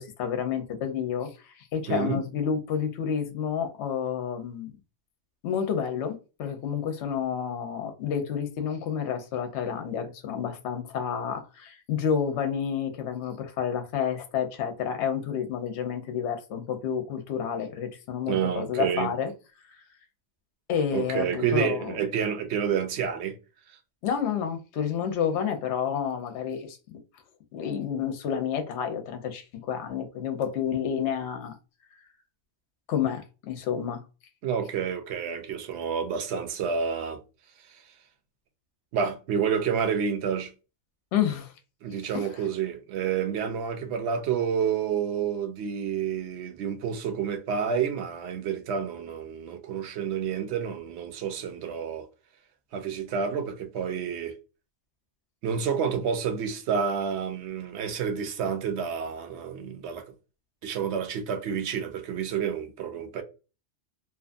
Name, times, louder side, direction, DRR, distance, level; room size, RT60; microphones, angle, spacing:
voice 1, 0.0-4.8 5.4-19.3 19.7-19.8 20.7-22.0 24.0-27.0 27.5-31.5 32.9-34.0 41.1-41.5 42.1-42.4, left 8 dB, 70° left, 0.8 m, -30 dB
voice 2, 1.9-2.2 18.3-19.1 20.9-23.4 23.7-23.8 34.4-37.2 38.9-40.5 41.8-52.1 52.7-54.3 55.4-60.0 60.6-63.2, right 7 dB, 65° right, 0.8 m, -29 dB
2.7 x 2.3 x 2.4 m
omnidirectional pair, 1.3 m